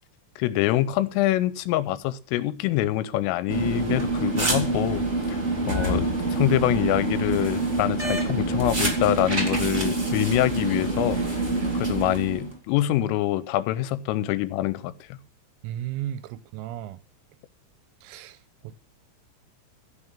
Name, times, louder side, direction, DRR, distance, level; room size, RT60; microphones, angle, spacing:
voice 1, 0.4-5.4 5.7-11.4 11.7-15.2, left 14 dB, 80° left, 3.2 m, -25 dB
sound 1, 3.5-12.6, right 2 dB, 30° right, 1.2 m, -26 dB
voice 2, 15.6-17.0 18.0-18.4 18.6-18.8, right 12 dB, 85° right, 3.5 m, -34 dB
15.5 x 6.6 x 7.1 m
omnidirectional pair, 6.0 m